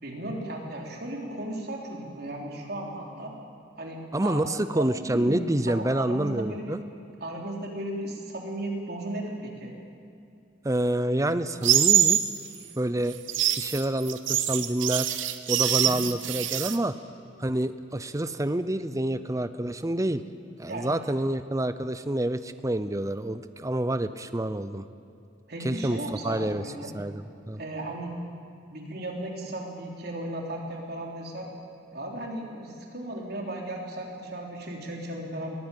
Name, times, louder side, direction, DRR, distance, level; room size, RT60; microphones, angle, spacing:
voice 1, 0.0-3.3 3.8-6.8 7.2-9.7 15.7-16.0 20.7-20.9 25.5-26.9 27.6-28.2 28.7-31.5 31.9-35.5, right 1 dB, 55° right, 0 dB, 3.6 m, -36 dB
voice 2, 4.1-6.8 10.6-12.3 12.8-13.2 13.6-15.1 15.5-16.9 17.4-20.2 20.6-24.9 25.6-26.6 26.9-27.6, right 1 dB, 15° right, 12 dB, 0.6 m, -28 dB
sound 1, 11.6-12.3 13.1-16.8, right 11 dB, 90° right, 1.0 m, -24 dB
22.0 x 15.0 x 9.2 m, 2.6 s
head